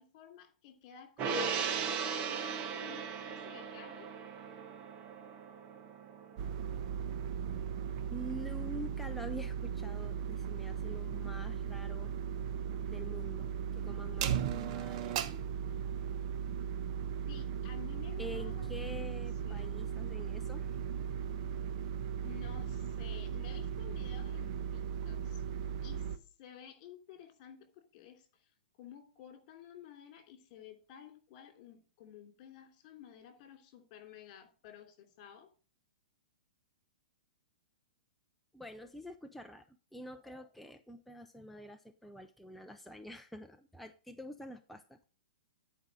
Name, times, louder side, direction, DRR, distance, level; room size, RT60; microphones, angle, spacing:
voice 1, 0.0-4.1 17.3-18.7 19.0-19.1 19.4-19.9 22.2-25.4 25.8-28.5 28.8-35.5, left 9 dB, 45° left, 6 dB, 3.0 m, -53 dB
Gong, 1.2-7.8 8.1-8.3, right 6 dB, 35° right, 1.5 m, -38 dB
sound 1, 6.4-26.2, right 8 dB, 50° right, 1.0 m, -37 dB
voice 2, 8.1-12.1 12.9-15.3 18.2-20.8 38.5-45.0, equal, ahead, 6 dB, 0.5 m, -47 dB
11.0 x 4.9 x 6.2 m, 0.36 s
hypercardioid pair, 135°, 5 cm